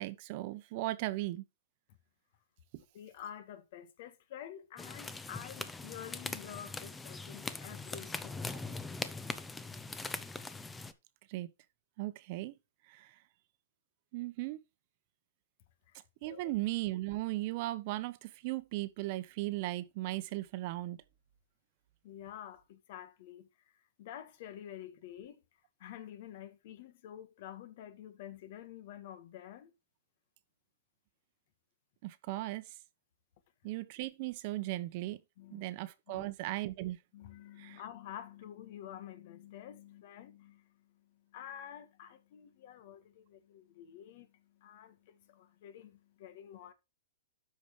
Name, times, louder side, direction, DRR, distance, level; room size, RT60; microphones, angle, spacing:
voice 1, 0.0-1.4 11.3-11.5 12.0-12.5 12.9-13.1 14.1-14.6 16.2-21.0 32.0-32.7 33.6-35.2 35.5-37.0 37.6-37.8, right 17 dB, 45° right, 1.0 m, -37 dB
voice 2, 2.9-8.8 15.9-16.0 16.3-16.5 22.0-23.5 24.0-25.4 25.8-29.7 35.4-35.7 36.1-36.3 37.1-46.7, left 10 dB, 55° left, 1.5 m, -49 dB
sound 1, 4.8-10.9, left 3 dB, 10° left, 0.7 m, -41 dB
12.5 x 5.2 x 3.3 m
hypercardioid pair, 135°, 0 cm